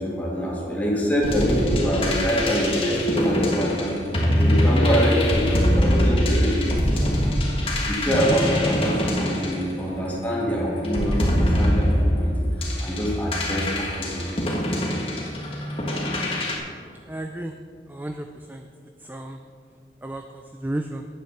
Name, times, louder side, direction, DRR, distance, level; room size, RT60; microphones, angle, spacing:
voice 1, 0.0-4.0 4.3-7.4 7.8-14.4, equal, 10° left, -5 dB, 2.4 m, -25 dB
sound 1, 1.2-10.2 10.8-16.6, equal, 30° left, 1.5 m, -23 dB
voice 2, 17.1-17.5 17.9-18.7 19.0-19.4 20.0-21.1, right 1 dB, 10° right, 5 dB, 0.3 m, -33 dB
10.0 x 8.9 x 5.8 m, 2.3 s
head